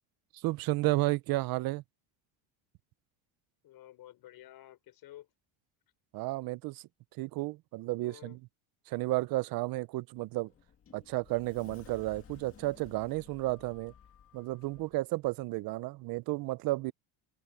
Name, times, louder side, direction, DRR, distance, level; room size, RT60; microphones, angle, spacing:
voice 1, 0.3-1.8 6.1-6.8 7.2-8.4 8.9-10.5 10.9-13.9 14.3-16.9, right 20 dB, 50° right, 0.5 m, -32 dB
voice 2, 3.6-5.3 8.0-8.4, left 13 dB, 50° left, 5.3 m, -52 dB
Sliding door, 10.2-15.0, left 8 dB, 30° left, 2.0 m, -56 dB
open air
cardioid pair, 165°, 46 cm